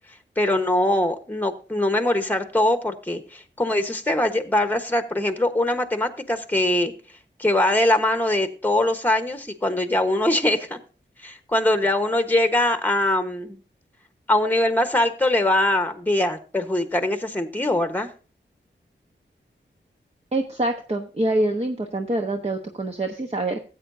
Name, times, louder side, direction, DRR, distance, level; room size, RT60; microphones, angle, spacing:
voice 1, 0.4-6.9 7.4-10.8 11.2-13.6 14.3-18.1, left 1 dB, 10° left, 7 dB, 1.1 m, -22 dB
voice 2, 20.3-23.6, right 1 dB, 30° right, 3 dB, 1.0 m, -25 dB
15.0 x 8.2 x 2.7 m, 0.35 s
wide cardioid pair, 65°, 20 cm